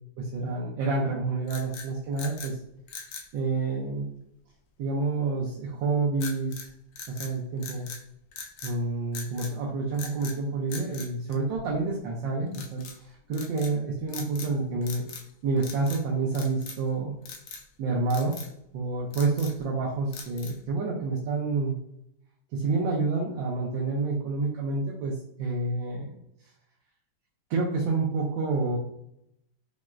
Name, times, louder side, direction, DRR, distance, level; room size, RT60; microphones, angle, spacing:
voice 1, 0.2-2.6 3.3-4.1 4.8-6.7 7.1-7.9 8.6-15.0 15.4-17.1 17.8-18.4 18.7-21.8 22.5-26.2 27.5-28.8, right 3 dB, 75° right, -3 dB, 1.3 m, -28 dB
sound 1, 1.4-2.5 2.9-3.3 6.2-6.7 7.0-8.0 8.3-8.8 9.1-9.5 9.9-10.4 10.7-11.9 12.5-13.0 13.3-13.7 14.1-14.6 14.8-15.3 15.6-16.0 16.3-16.9 17.3-17.7 18.1-18.5 18.9-19.6 20.1-20.7, left 5 dB, 70° left, 1.0 m, -41 dB
5.8 x 2.1 x 2.4 m, 0.76 s
omnidirectional pair, 2.2 m